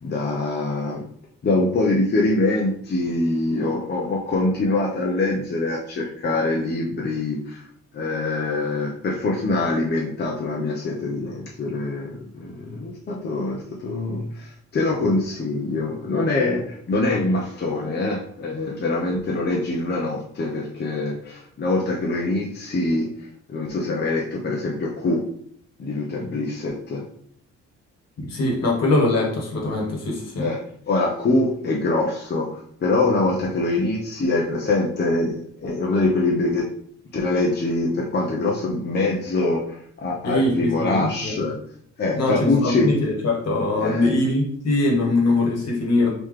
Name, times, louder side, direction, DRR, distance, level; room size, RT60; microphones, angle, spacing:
voice 1, 0.0-1.0 1.4-7.6 7.9-25.2 25.8-27.0 30.4-30.6 30.9-36.7 37.1-41.5 42.0-42.9 43.8-44.1, left 2 dB, 35° left, -2 dB, 0.7 m, -24 dB
voice 2, 28.2-30.5 40.2-41.4 42.2-46.1, left 2 dB, 55° left, -1 dB, 1.4 m, -22 dB
3.7 x 3.0 x 3.2 m, 0.63 s
cardioid pair, 90°, 30 cm